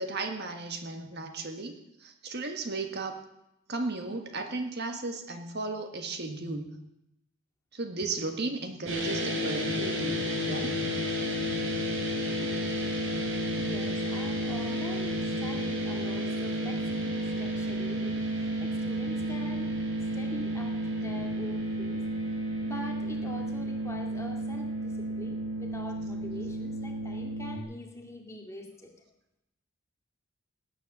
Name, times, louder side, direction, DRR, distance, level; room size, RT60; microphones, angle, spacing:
voice 1, 0.0-3.2 3.7-6.8 7.7-10.2 10.5-10.8 21.2-21.3, right 3 dB, 50° right, 6 dB, 1.5 m, -35 dB
sound 1, 8.9-27.6, equal, 65° right, 3.6 m, -31 dB
voice 2, 13.6-19.7 20.1-22.0 22.6-28.9, left 1 dB, 15° left, 1 dB, 2.3 m, -44 dB
18.5 x 9.6 x 7.3 m, 0.85 s
head